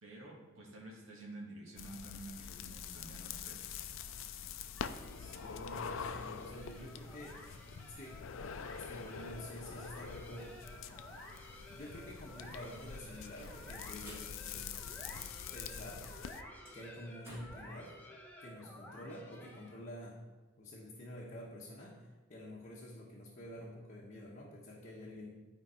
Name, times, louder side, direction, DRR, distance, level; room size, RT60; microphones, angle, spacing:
voice 1, 0.0-3.6, right 2 dB, 80° right, -4 dB, 1.8 m, -50 dB
sound 1, 1.8-16.4, left 7 dB, 75° left, 0.4 m, -45 dB
sound 2, 4.8-19.9, equal, 10° left, 1.0 m, -54 dB
voice 2, 5.1-8.3 8.9-10.6 11.7-14.7 15.5-16.1 16.7-18.0 18.4-20.2 20.6-25.3, left 1 dB, 35° left, -4 dB, 1.1 m, -49 dB
sound 3, 11.9-15.5 15.8-17.7, equal, 15° right, 2.3 m, -58 dB
10.5 x 4.6 x 4.4 m, 1.2 s
head